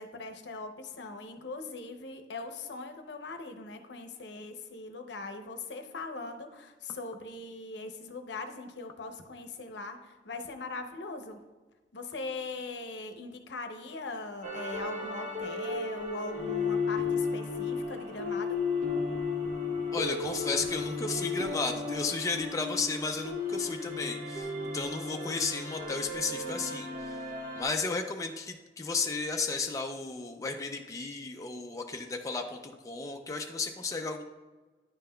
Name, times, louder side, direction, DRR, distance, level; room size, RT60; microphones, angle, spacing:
voice 1, 0.0-11.4 11.9-18.6, left 3 dB, 85° left, 6 dB, 0.6 m, -40 dB
sound 1, 14.4-27.6, left 4 dB, 45° right, 0.9 m, -34 dB
voice 2, 19.9-27.2 27.6-34.2, left 4 dB, 20° left, 3 dB, 0.4 m, -34 dB
9.6 x 5.6 x 2.2 m, 1.3 s
head